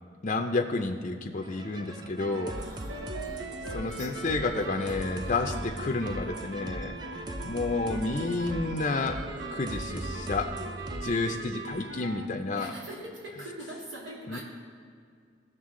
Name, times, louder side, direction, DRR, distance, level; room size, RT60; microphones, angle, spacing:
voice 1, 0.2-2.6 3.7-9.2 9.5-10.5 11.0-12.7 14.3-14.4, left 3 dB, 40° left, 3 dB, 0.5 m, -30 dB
sound 1, 1.4-11.1, right 1 dB, 25° right, 0.5 m, -40 dB
sound 2, 2.2-12.3, right 3 dB, 65° right, 0.8 m, -41 dB
voice 2, 2.5-5.5 12.5-14.4, right 1 dB, 80° right, -5 dB, 2.7 m, -44 dB
16.5 x 6.7 x 3.7 m, 2.1 s
head